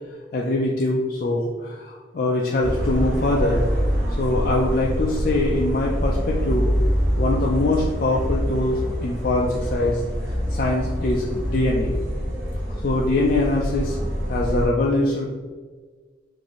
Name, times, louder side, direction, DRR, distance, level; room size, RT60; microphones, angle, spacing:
voice 1, 0.3-3.7 4.2-6.7 7.1-10.0 10.5-12.0 12.8-15.3, left 2 dB, 45° left, -3 dB, 0.3 m, -23 dB
sound 1, 2.6-14.7, equal, 60° right, 1.0 m, -25 dB
3.9 x 2.6 x 3.0 m, 1.4 s
head